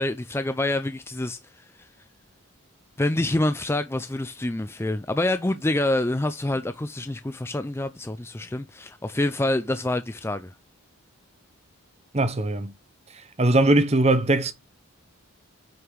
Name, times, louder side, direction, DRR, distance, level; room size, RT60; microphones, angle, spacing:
voice 1, 0.0-1.4 1.8-1.9 3.0-10.5, left 1 dB, 10° left, 0.4 m, -26 dB
voice 2, 12.1-12.7 13.4-14.5, right 2 dB, 30° right, 0.8 m, -20 dB
7.9 x 4.9 x 3.5 m
head